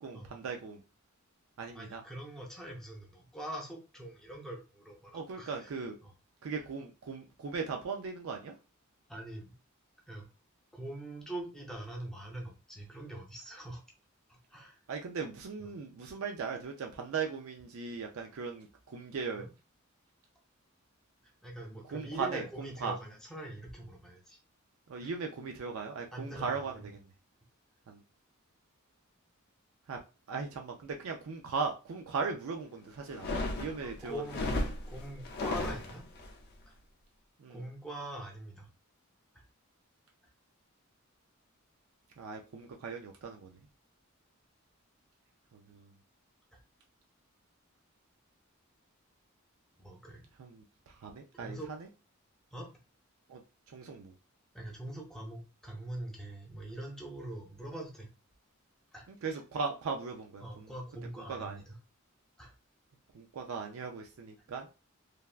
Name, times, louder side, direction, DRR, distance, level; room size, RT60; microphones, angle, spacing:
voice 1, 0.0-0.8 1.6-2.0 5.1-6.0 6.4-8.5 14.9-19.5 21.9-22.9 24.9-27.1 27.9-28.0 29.9-30.0 30.3-34.2 37.4-37.6 42.2-43.6 45.5-45.9 50.4-51.9 53.3-53.4 53.7-54.1 59.1-60.7 61.3-61.6 63.1-64.7, right 5 dB, 80° right, 0.4 m, -38 dB
voice 2, 1.7-5.7 6.0-6.1 9.1-9.5 10.1-10.3 10.7-13.8 14.3-14.8 15.6-15.7 19.3-19.5 21.4-24.4 25.0-25.1 26.1-26.8 33.8-36.1 36.7-36.8 37.5-38.7 49.8-50.2 51.3-51.7 52.5-52.7 54.5-58.1 58.9-59.1 60.4-61.8 62.4-62.5, right 1 dB, 5° left, 0.6 m, -43 dB
sound 1, 33.1-36.3, left 2 dB, 50° left, 0.5 m, -35 dB
3.3 x 2.2 x 2.4 m
head